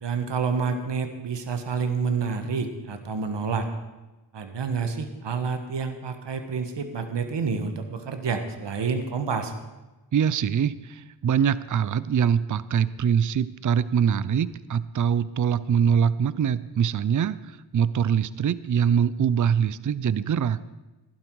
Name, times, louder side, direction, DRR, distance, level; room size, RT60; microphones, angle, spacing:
voice 1, 0.0-3.7 4.3-9.5, right 5 dB, 70° right, 7 dB, 1.5 m, -28 dB
voice 2, 10.1-20.6, right 8 dB, 45° right, 17 dB, 0.5 m, -23 dB
15.5 x 11.5 x 4.7 m, 1.1 s
cardioid pair, 65°, 44 cm